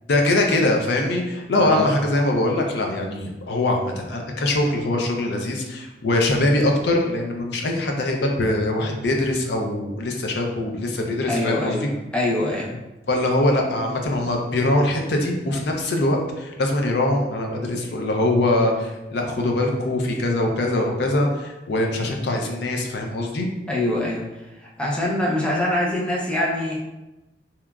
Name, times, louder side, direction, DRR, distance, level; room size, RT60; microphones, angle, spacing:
voice 1, 0.1-11.9 13.1-23.5, left 1 dB, 65° left, 1 dB, 0.4 m, -22 dB
voice 2, 11.2-12.8 23.7-24.3 24.8-26.8, left 1 dB, 5° left, -4 dB, 0.4 m, -24 dB
2.8 x 2.3 x 2.2 m, 1.0 s
head